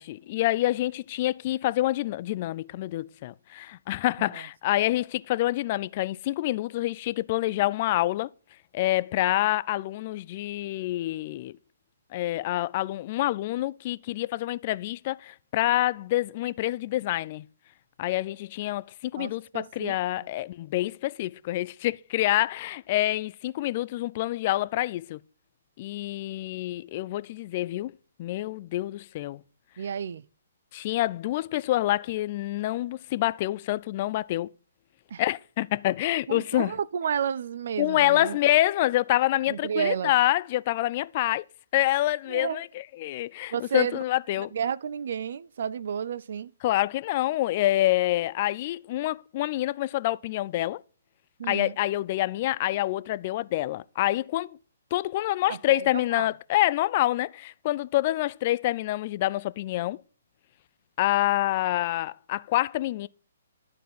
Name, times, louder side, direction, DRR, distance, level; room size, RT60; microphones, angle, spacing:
voice 1, 0.0-8.3 8.7-11.6 12.1-17.4 18.0-25.2 25.8-27.9 28.2-29.4 30.7-34.5 35.2-36.7 37.8-41.4 41.7-44.5 46.6-50.8 51.5-54.6 54.9-60.0 61.0-63.1, left 15 dB, 40° left, 0.4 m, -27 dB
voice 2, 19.2-20.0 29.8-30.2 35.1-35.2 36.3-38.4 39.5-40.1 42.3-42.6 43.5-44.0 44.4-46.5 51.4-51.8 55.5-56.3, right 8 dB, 60° right, 0.5 m, -31 dB
11.5 x 4.6 x 7.6 m
figure-of-eight pair, 135°, 0 cm